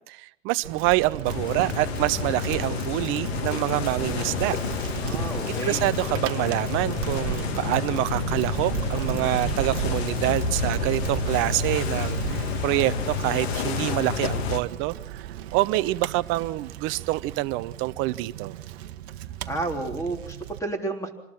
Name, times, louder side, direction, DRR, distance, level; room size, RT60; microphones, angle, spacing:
voice 1, 0.1-4.6 5.5-15.3 15.5-18.5, right 18 dB, 30° right, 16 dB, 0.8 m, -26 dB
Bicycle, 0.6-20.6, right 12 dB, 50° right, 1.3 m, -35 dB
sound 1, 1.2-14.6, left 6 dB, 50° left, 1.9 m, -29 dB
voice 2, 5.0-5.9 19.5-21.1, right 2 dB, 10° left, 4 dB, 3.6 m, -31 dB
27.0 x 20.5 x 6.0 m, 0.81 s
figure-of-eight pair, 100°, 39 cm